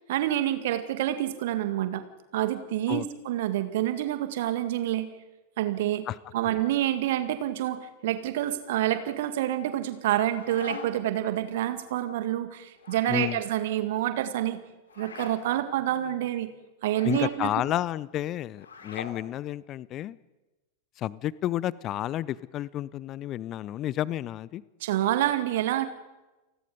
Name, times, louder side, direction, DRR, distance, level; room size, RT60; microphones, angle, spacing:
voice 1, 0.1-2.1 2.3-5.1 5.6-6.1 6.3-14.6 15.0-16.5 16.8-17.5 24.8-25.9, right 13 dB, 55° right, 10 dB, 2.0 m, -27 dB
sound 1, 10.1-11.1 12.8-13.4 14.9-15.4 16.9-17.3 18.6-19.2, left 5 dB, 65° left, 3.4 m, -41 dB
voice 2, 13.1-13.4 17.0-20.2 21.0-24.6, left 13 dB, 35° left, 22 dB, 0.6 m, -31 dB
29.5 x 19.5 x 5.3 m, 1.1 s
figure-of-eight pair, 90°, 0 cm